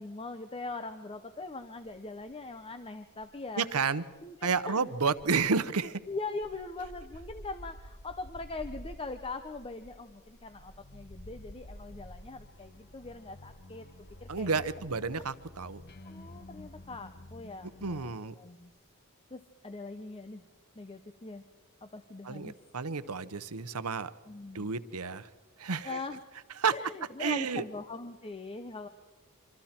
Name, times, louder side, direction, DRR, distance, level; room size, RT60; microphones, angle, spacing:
voice 1, 0.0-3.6 4.2-4.8 6.1-13.9 14.2-14.5 16.0-18.7 19.3-20.4 20.8-21.4 21.8-22.6 24.3-24.7 25.8-26.2 26.7-28.9, left 3 dB, 25° left, 9 dB, 0.8 m, -41 dB
sound 1, 1.8-2.6 2.8-16.4 16.6-16.9, equal, 80° left, 1.9 m, -51 dB
voice 2, 3.6-4.0 4.4-6.0 14.3-15.8 17.8-18.3 22.2-24.1 24.5-25.3 25.6-26.0 26.6-26.7 27.2-27.6, right 5 dB, 80° right, 14 dB, 0.9 m, -31 dB
sound 2, 10.5-18.2, left 1 dB, 45° left, 1.2 m, -51 dB
25.5 x 25.0 x 4.4 m, 1.3 s
head